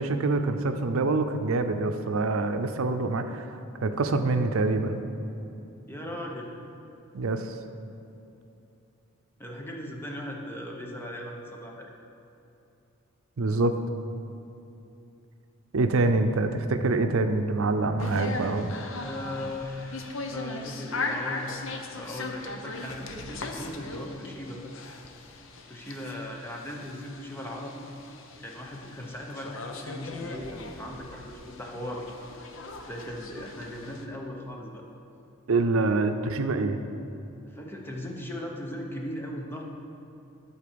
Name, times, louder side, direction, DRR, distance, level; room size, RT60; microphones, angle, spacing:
voice 1, 0.0-5.0 7.1-7.6 13.4-13.7 15.7-18.7 35.5-36.8, right 3 dB, 90° right, 8 dB, 0.6 m, -25 dB
voice 2, 5.9-6.5 9.4-11.9 19.0-24.7 25.7-27.9 28.4-32.1 32.9-34.8 37.5-39.6, left 1 dB, 10° left, 0 dB, 0.9 m, -38 dB
sound 1, 18.0-34.0, left 3 dB, 70° left, 0.8 m, -39 dB
11.5 x 4.3 x 6.8 m, 2.8 s
head